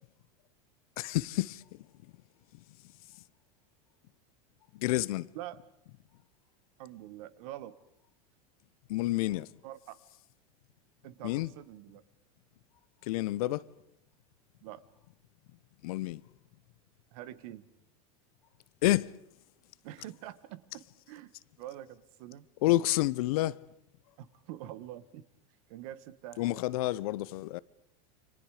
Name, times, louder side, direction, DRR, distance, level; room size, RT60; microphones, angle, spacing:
voice 1, 1.0-1.6 4.7-5.3 8.9-9.5 11.2-11.5 13.1-13.6 15.8-16.2 18.8-19.1 22.6-23.6 26.4-27.6, left 17 dB, 75° left, 0.9 m, -29 dB
voice 2, 6.8-7.7 9.6-10.0 11.0-12.0 14.6-14.8 17.1-17.7 19.8-21.3 21.6-22.5 24.2-25.2 25.7-26.6, right 13 dB, 65° right, 1.6 m, -45 dB
30.0 x 25.5 x 5.0 m
supercardioid pair, 130°, 19 cm